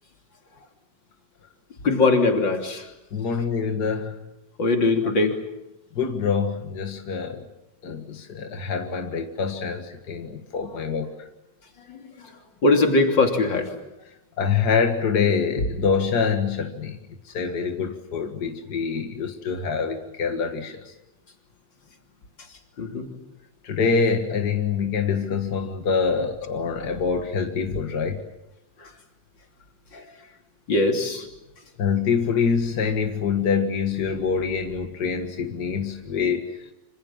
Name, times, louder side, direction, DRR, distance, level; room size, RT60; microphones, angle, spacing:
voice 1, 1.8-2.9 4.6-5.4 11.9-13.7 22.8-23.1 28.8-28.9 29.9-30.1 30.7-31.3, left 3 dB, 30° left, 4 dB, 3.2 m, -22 dB
voice 2, 3.1-4.2 5.9-7.4 7.8-11.1 14.4-17.0 17.3-20.8 23.6-28.2 31.8-36.5, left 5 dB, 50° left, 5 dB, 1.2 m, -25 dB
27.5 x 26.0 x 7.4 m, 0.92 s
omnidirectional pair, 4.5 m